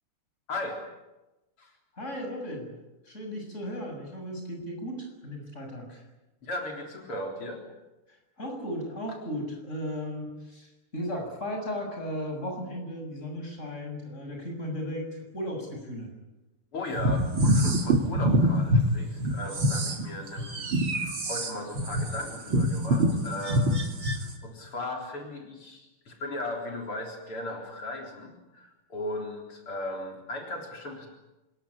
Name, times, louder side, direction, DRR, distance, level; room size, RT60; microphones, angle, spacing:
voice 1, 0.5-0.8 1.6-1.7 6.4-7.6 16.7-31.1, left 2 dB, 80° left, 1 dB, 4.7 m, -37 dB
voice 2, 1.9-2.8 3.0-6.0 8.1-16.1, equal, 30° left, 2 dB, 7.5 m, -36 dB
sound 1, 17.0-18.8 19.2-24.3, equal, 65° right, 3.6 m, -25 dB
26.0 x 22.0 x 9.9 m, 1.0 s
omnidirectional pair, 2.4 m